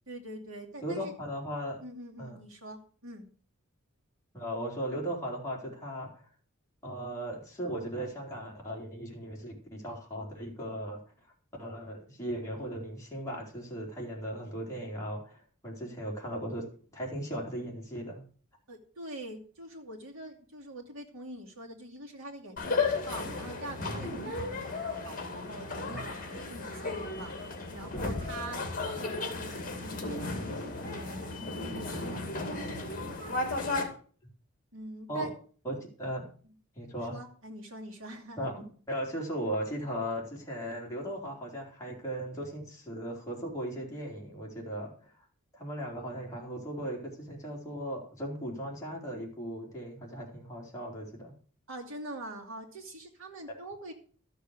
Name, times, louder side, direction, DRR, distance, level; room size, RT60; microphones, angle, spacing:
voice 1, 0.1-1.1 1.8-3.3 18.7-27.3 27.7-30.3 30.8-32.7 34.7-35.3 36.4-36.5 37.1-38.5 51.7-53.9, right 1 dB, 65° right, 1 dB, 2.6 m, -44 dB
voice 2, 0.8-1.8 2.2-2.4 4.3-6.3 6.8-11.0 11.2-11.3 11.6-16.6 16.9-18.3 35.1-35.3 35.6-36.3 36.8-37.2 38.4-38.5 38.9-45.2 45.5-51.3, right 1 dB, 15° left, -3 dB, 3.7 m, -37 dB
sound 1, 22.6-33.8, left 3 dB, 40° left, 2.3 m, -34 dB
13.0 x 6.8 x 6.6 m, 0.43 s
head